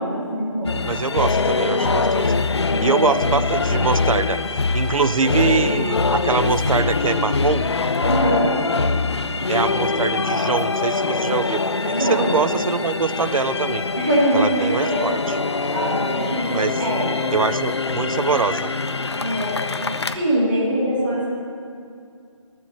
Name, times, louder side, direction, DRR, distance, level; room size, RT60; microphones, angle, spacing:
voice 1, 0.0-0.8 2.7-3.1 8.0-8.5 11.9-12.3 14.0-15.1 15.7-16.5 16.8-17.1 19.2-19.5 20.1-21.3, equal, 15° right, -7 dB, 1.6 m, -22 dB
sound 1, 0.6-20.2, left 4 dB, 55° left, 0.4 m, -23 dB
voice 2, 0.9-2.3 2.8-4.4 4.7-7.7 8.9-13.8 14.3-15.4 16.5-16.8 17.3-18.7, right 5 dB, 80° right, 15 dB, 0.4 m, -24 dB
12.0 x 4.5 x 7.7 m, 2.3 s
figure-of-eight pair, 175°, 17 cm